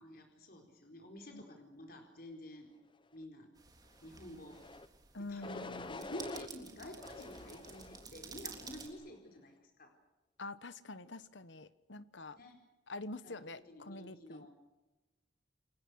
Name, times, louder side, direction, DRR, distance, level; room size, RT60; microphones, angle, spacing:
voice 1, 0.0-2.7 3.1-3.5 4.0-4.6 5.3-9.9 12.3-12.6 13.2-13.4 13.7-14.5, left 1 dB, 50° left, 3 dB, 4.4 m, -50 dB
sound 1, 3.6-8.9, right 5 dB, 20° right, 3.5 m, -52 dB
sound 2, 4.5-4.9 5.4-6.5 7.0-8.1 8.6-9.1, left 3 dB, 25° left, 0.9 m, -48 dB
voice 2, 5.1-6.0 10.4-12.4 12.9-14.5, left 2 dB, 75° left, 14 dB, 1.2 m, -46 dB
29.5 x 23.0 x 6.4 m, 1.1 s
head